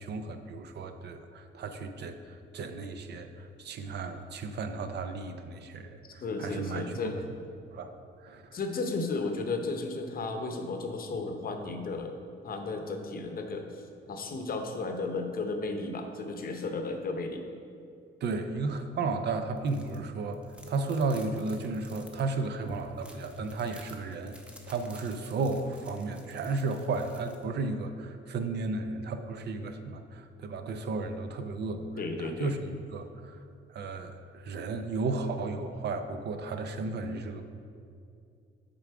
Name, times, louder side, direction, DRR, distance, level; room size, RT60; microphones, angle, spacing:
voice 1, 0.0-7.1 7.7-7.9 8.2-8.6 18.2-20.4 20.7-24.4 24.7-32.6 32.9-33.4 33.7-37.4, right 3 dB, 60° right, 8 dB, 0.5 m, -34 dB
voice 2, 6.2-7.2 8.5-12.1 12.4-17.4 32.0-32.6, left 3 dB, 45° left, 5 dB, 0.7 m, -34 dB
sound 1, 19.6-20.0 20.3-27.4, equal, 5° right, 0.7 m, -53 dB
6.7 x 3.8 x 4.6 m, 2.4 s
cardioid pair, 90°, 20 cm